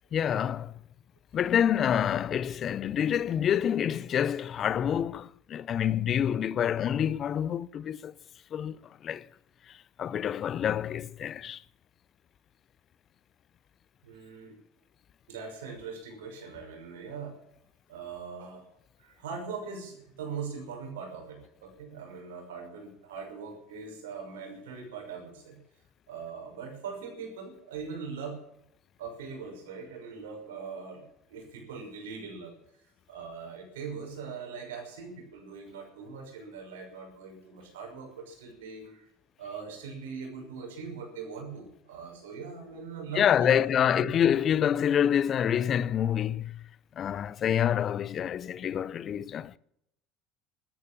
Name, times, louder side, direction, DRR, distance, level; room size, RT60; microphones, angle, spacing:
voice 1, 0.1-0.7 1.3-8.1 8.5-9.3 10.0-11.6 43.1-46.6 47.0-49.6, left 9 dB, 45° left, 0.6 m, -27 dB
voice 2, 14.0-14.6 15.3-17.4 17.9-18.7 19.0-25.6 26.1-28.3 29.0-32.5 33.1-39.1 39.4-44.1, right 5 dB, 85° right, 5.8 m, -41 dB
13.5 x 12.0 x 8.6 m
hypercardioid pair, 80°, 0 cm